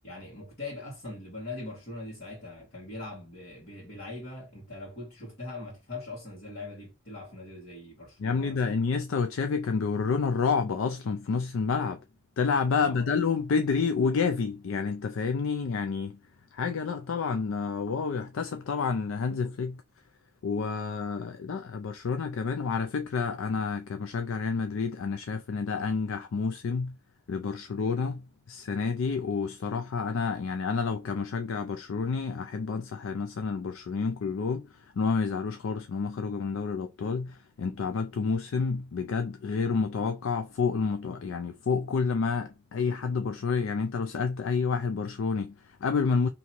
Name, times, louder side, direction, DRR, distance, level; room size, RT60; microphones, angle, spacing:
voice 1, 0.0-8.8 12.8-13.1, left 2 dB, 50° left, 1.7 m, -41 dB
voice 2, 8.2-12.0 12.4-16.2 16.5-19.8 20.4-27.0 27.3-46.3, left 5 dB, 70° left, 0.4 m, -29 dB
2.9 x 2.7 x 4.3 m
head